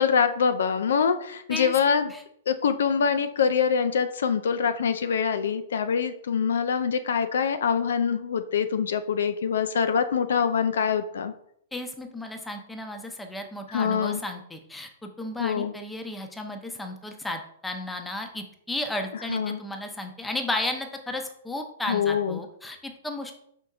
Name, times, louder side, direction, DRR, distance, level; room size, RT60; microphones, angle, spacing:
voice 1, 0.0-2.1 2.5-11.3 13.7-14.2 15.4-15.7 19.3-19.6 21.9-22.4, left 6 dB, 70° left, 10 dB, 0.3 m, -24 dB
voice 2, 11.7-23.3, left 2 dB, 5° left, 4 dB, 0.7 m, -34 dB
5.2 x 3.6 x 2.4 m, 0.70 s
figure-of-eight pair, 110°, 0 cm